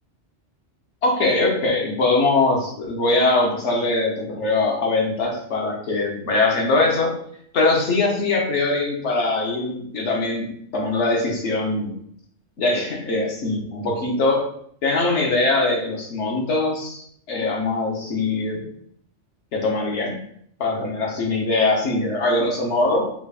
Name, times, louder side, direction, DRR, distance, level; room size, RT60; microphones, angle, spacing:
voice 1, 1.0-7.2 7.5-12.0 12.6-14.5 14.8-18.6 19.5-20.2 20.6-23.1, left 2 dB, 75° left, 0 dB, 1.3 m, -22 dB
5.9 x 2.4 x 3.4 m, 0.66 s
omnidirectional pair, 1.2 m